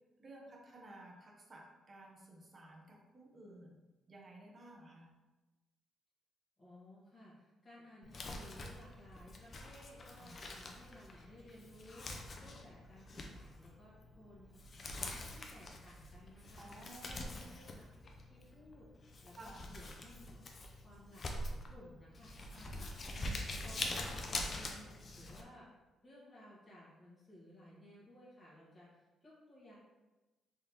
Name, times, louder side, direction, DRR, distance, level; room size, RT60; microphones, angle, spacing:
voice 1, 0.2-3.8 4.1-5.1 10.2-10.4 16.6-17.5 19.4-19.7 22.5-22.7 23.1-23.4, right 1 dB, 35° right, -1 dB, 0.9 m, -55 dB
voice 2, 6.6-16.7 17.1-17.9 18.3-18.9 19.2-22.3 22.8-29.8, left 1 dB, 25° left, -9 dB, 1.3 m, -58 dB
Crumpling crinkling, 8.0-25.4, left 2 dB, 45° left, 0.5 m, -45 dB
3.7 x 3.4 x 2.9 m, 1.1 s
cardioid pair, 90°, 0 cm